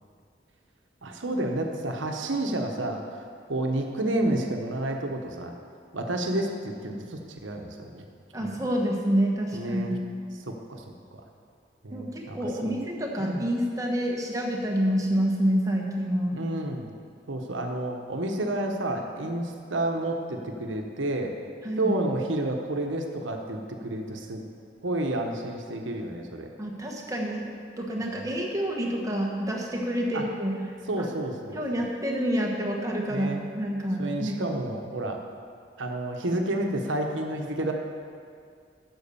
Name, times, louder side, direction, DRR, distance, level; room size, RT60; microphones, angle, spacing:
voice 1, 1.0-3.0 3.5-5.5 5.9-8.1 8.4-8.6 9.5-10.0 10.5-10.8 11.8-12.7 13.2-13.4 16.3-16.9 17.3-21.3 21.8-24.4 24.8-26.5 28.2-28.3 30.1-30.2 30.9-31.6 33.1-33.4 34.0-35.2 35.8-37.7, right 1 dB, 85° right, 3 dB, 1.1 m, -30 dB
voice 2, 8.3-9.9 11.9-16.4 21.6-21.9 26.6-27.5 27.8-30.6 31.0-31.1 31.5-34.4, equal, 20° right, -1 dB, 1.2 m, -28 dB
9.5 x 6.3 x 7.0 m, 2.2 s
head